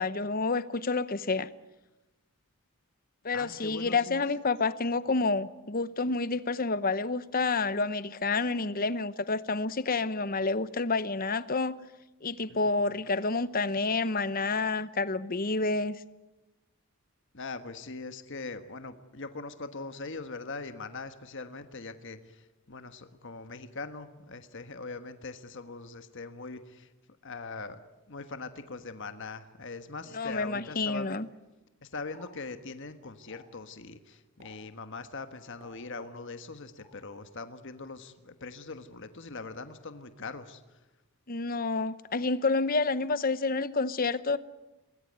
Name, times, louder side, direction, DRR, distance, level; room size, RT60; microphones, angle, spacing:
voice 1, 0.0-1.5 3.2-11.8 12.2-16.0 30.1-31.3 41.3-44.4, left 3 dB, 40° left, 0.9 m, -29 dB
voice 2, 3.3-4.2 12.5-12.6 17.3-26.9 27.2-27.8 28.1-31.2 31.8-40.8, left 3 dB, 55° left, 1.4 m, -41 dB
Explosion, 30.8-31.7 32.0-32.4 33.3-33.6 34.4-34.8 35.6-36.3 36.8-37.0, left 1 dB, 30° right, 6.2 m, -56 dB
24.0 x 20.0 x 9.5 m
head